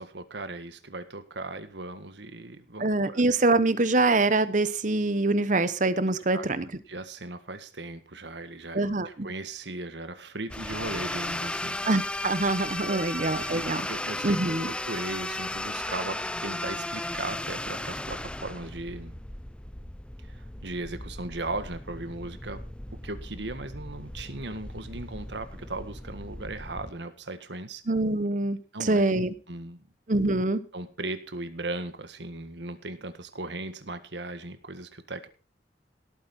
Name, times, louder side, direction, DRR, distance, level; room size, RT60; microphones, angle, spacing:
voice 1, 0.0-3.2 6.3-11.8 12.8-14.4 14.7-19.1 20.3-22.6 22.9-27.8 28.7-29.0 29.5-29.9 30.7-35.3, right 2 dB, 75° right, 10 dB, 1.7 m, -37 dB
voice 2, 2.8-6.6 8.7-9.3 11.8-13.9 14.2-14.7 27.9-29.3 30.1-30.6, right 2 dB, 45° right, 14 dB, 1.0 m, -25 dB
sound 1, 10.5-26.9, left 1 dB, 5° left, 0.5 m, -36 dB
18.0 x 8.6 x 4.3 m, 0.36 s
head